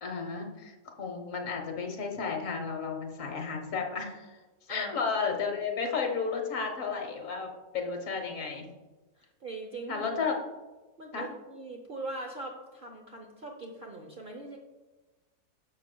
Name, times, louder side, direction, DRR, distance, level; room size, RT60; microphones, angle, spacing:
voice 1, 0.0-4.4 4.7-8.7 9.9-10.3 11.1-11.3, left 5 dB, 60° left, 3 dB, 1.3 m, -33 dB
voice 2, 4.7-5.0 9.2-10.0 11.0-14.6, right 2 dB, 50° right, 2 dB, 0.7 m, -41 dB
11.0 x 6.7 x 2.2 m, 1.2 s
omnidirectional pair, 1.6 m